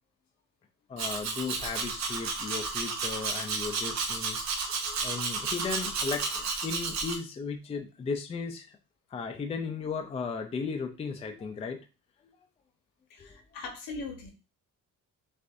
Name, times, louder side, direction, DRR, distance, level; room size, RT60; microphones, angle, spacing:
voice 1, 0.9-8.8 9.1-11.8, left 5 dB, 20° left, 5 dB, 0.4 m, -36 dB
Domestic sounds home sounds, 1.0-7.2, right 4 dB, 55° right, 0.9 m, -32 dB
voice 2, 13.1-14.3, left 3 dB, 80° left, 3 dB, 1.3 m, -40 dB
6.6 x 2.5 x 2.5 m, 0.31 s
cardioid pair, 170°, 33 cm